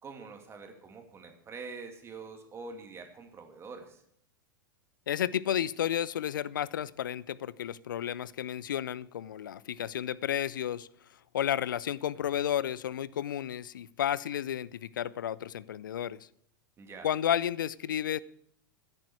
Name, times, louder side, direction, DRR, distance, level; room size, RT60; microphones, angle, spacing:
voice 1, 0.0-4.0 16.8-17.1, right 4 dB, 25° right, 4 dB, 2.3 m, -45 dB
voice 2, 5.1-10.9 11.3-16.2 17.0-18.2, left 10 dB, 70° left, 21 dB, 0.5 m, -32 dB
14.0 x 9.9 x 4.8 m, 0.69 s
figure-of-eight pair, 90°, 11 cm